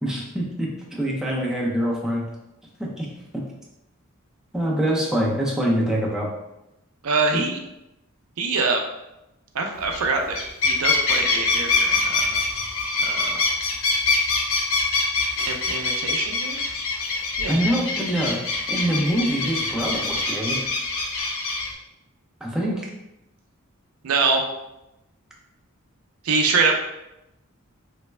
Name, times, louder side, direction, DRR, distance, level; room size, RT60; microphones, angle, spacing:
voice 1, 0.0-2.2 2.8-3.1 3.3-3.4 4.5-6.3 7.3-7.4 17.5-18.4 18.7-20.6 22.4-22.9, equal, 5° right, -4 dB, 0.5 m, -24 dB
voice 2, 7.0-7.6 8.4-8.8 9.5-12.4 13.0-13.4 15.4-16.6 17.4-17.6 24.0-24.4 26.2-26.8, right 4 dB, 85° right, 3 dB, 0.5 m, -24 dB
sound 1, 9.8-10.0 10.3-21.7, left 3 dB, 70° left, 0.6 m, -24 dB
3.2 x 2.1 x 3.2 m, 0.90 s
head